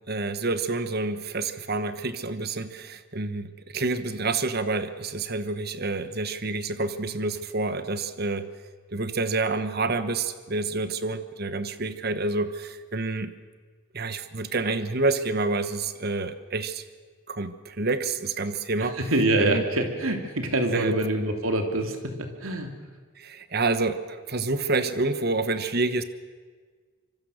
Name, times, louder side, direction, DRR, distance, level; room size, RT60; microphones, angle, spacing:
voice 1, 0.1-8.5 8.9-13.3 13.9-16.8 17.3-19.0 19.4-19.6 20.7-21.0 23.2-26.0, right 3 dB, 45° right, 11 dB, 1.2 m, -28 dB
voice 2, 18.8-22.7, right 2 dB, 75° right, 4 dB, 2.9 m, -25 dB
25.5 x 24.0 x 6.6 m, 1.5 s
head